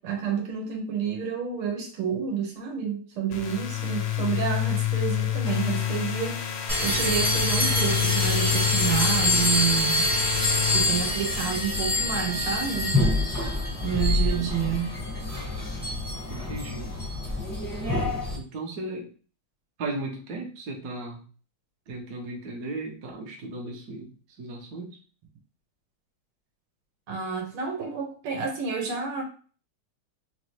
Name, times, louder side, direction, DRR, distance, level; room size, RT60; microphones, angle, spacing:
voice 1, 0.0-6.5 6.8-10.1 10.7-13.0 13.8-15.0 27.1-29.2, right 7 dB, 90° right, 1 dB, 1.9 m, -29 dB
sound 1, 3.3-11.6, left 10 dB, 75° left, 1.3 m, -28 dB
sound 2, 6.7-18.4, left 1 dB, 15° right, 0.7 m, -26 dB
voice 2, 14.1-14.6 16.3-16.9 18.4-19.1 19.8-21.2 21.9-24.1 24.4-25.0, right 2 dB, 55° right, 2 dB, 1.1 m, -36 dB
4.0 x 2.9 x 3.0 m, 0.40 s
omnidirectional pair, 2.3 m